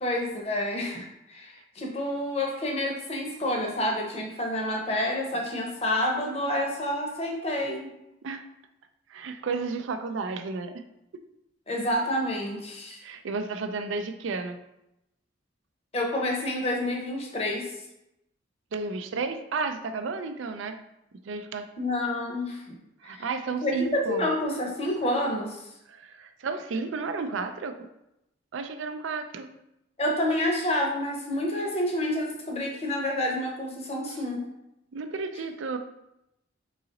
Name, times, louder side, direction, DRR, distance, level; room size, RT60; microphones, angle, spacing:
voice 1, 0.0-7.9 11.7-13.0 15.9-17.7 21.8-22.8 23.0-23.2 23.6-25.6 30.0-34.4, left 1 dB, 30° left, 0 dB, 0.7 m, -28 dB
voice 2, 9.1-10.8 13.0-14.6 18.7-20.8 21.2-21.7 23.0-24.3 25.9-27.8 28.5-29.5 34.0-34.2 34.9-35.8, right 4 dB, 75° right, 8 dB, 0.4 m, -32 dB
3.9 x 2.9 x 3.8 m, 0.85 s
head